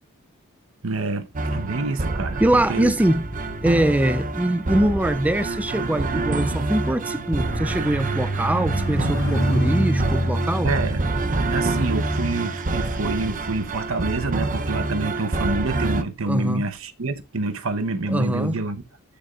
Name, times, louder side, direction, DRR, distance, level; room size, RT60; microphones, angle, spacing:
voice 1, 0.8-2.9 10.6-11.0 11.5-18.8, right 3 dB, 75° right, 1.0 m, -27 dB
sound 1, 1.3-16.0, right 2 dB, 40° right, 0.7 m, -27 dB
voice 2, 2.4-3.3 3.6-10.7 16.3-16.7 18.1-18.6, right 1 dB, 5° right, 0.4 m, -23 dB
sound 2, 2.8-14.4 15.2-15.5, right 1 dB, 70° left, 1.7 m, -29 dB
14.5 x 6.9 x 2.5 m
head